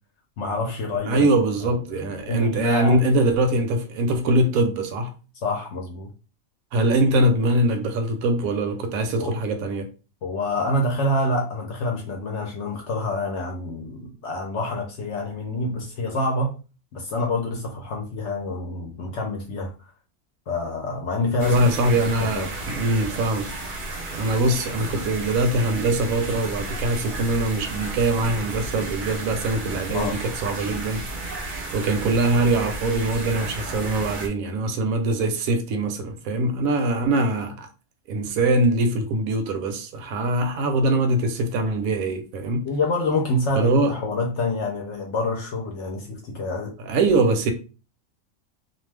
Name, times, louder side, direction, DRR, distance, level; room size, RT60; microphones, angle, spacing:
voice 1, 0.4-1.2 1.6-3.0 5.4-6.1 9.2-9.3 10.2-16.5 16.9-19.7 20.5-21.6 22.0-22.5 29.9-30.2 42.6-46.7, left 2 dB, 65° left, 0.8 m, -27 dB
voice 2, 1.0-5.1 6.7-9.9 21.4-23.5 24.2-31.0 31.7-37.7 38.1-42.7 43.6-44.0 46.9-47.5, right 2 dB, 80° right, 1.0 m, -22 dB
sound 1, 21.4-34.3, right 2 dB, 50° right, 0.7 m, -33 dB
2.5 x 2.2 x 3.2 m
omnidirectional pair, 1.5 m